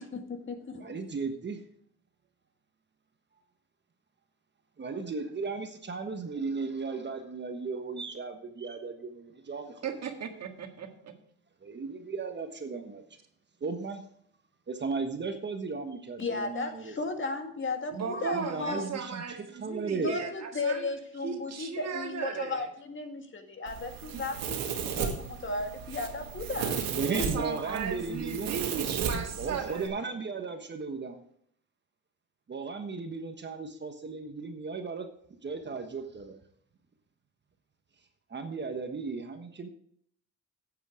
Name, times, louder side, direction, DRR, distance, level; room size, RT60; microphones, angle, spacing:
voice 1, 0.0-1.0 16.2-18.9 20.0-26.8 27.2-27.3, left 3 dB, 35° left, 5 dB, 1.9 m, -35 dB
voice 2, 0.8-1.6 4.8-9.9 11.6-13.0 13.6-14.0 14.7-16.9 18.3-20.2 26.9-28.5 29.1-31.1 32.5-35.1 35.4-36.4 38.3-39.7, right 4 dB, 35° right, 6 dB, 1.3 m, -36 dB
voice 3, 9.8-11.1 17.9-20.9 21.2-22.7 24.1-24.2 27.0-29.9, right 6 dB, 50° right, 4 dB, 1.8 m, -36 dB
Domestic sounds home sounds, 23.7-29.9, right 7 dB, 85° right, 1.9 m, -35 dB
9.4 x 8.3 x 4.9 m, 0.65 s
cardioid pair, 90°, 33 cm